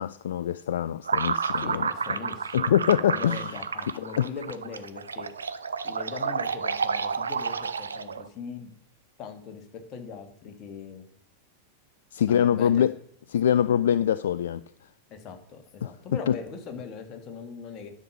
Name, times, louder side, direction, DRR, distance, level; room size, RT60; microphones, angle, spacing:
voice 1, 0.0-1.9 2.5-3.4 4.2-4.3 12.1-12.9 13.3-14.6 16.3-16.4, left 9 dB, 60° left, 0.3 m, -24 dB
sound 1, 1.0-8.3, right 5 dB, 70° right, 0.5 m, -30 dB
voice 2, 1.5-5.3 5.8-8.7 9.2-11.0 12.3-12.9 15.1-18.0, left 5 dB, 35° left, 1.8 m, -40 dB
9.8 x 6.6 x 5.7 m
figure-of-eight pair, 90°, 0 cm